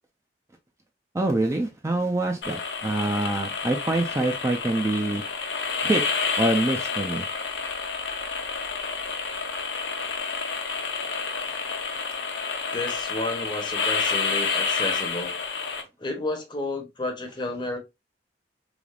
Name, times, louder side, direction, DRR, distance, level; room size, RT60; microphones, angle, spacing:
voice 1, 1.1-5.2 5.8-6.0 6.4-7.3, right 2 dB, 15° right, 0.4 m, -25 dB
sound 1, 2.4-15.8, left 5 dB, 75° left, 0.7 m, -29 dB
voice 2, 12.7-15.3 16.0-17.8, left 2 dB, 25° left, 0.7 m, -31 dB
3.3 x 2.4 x 2.3 m
head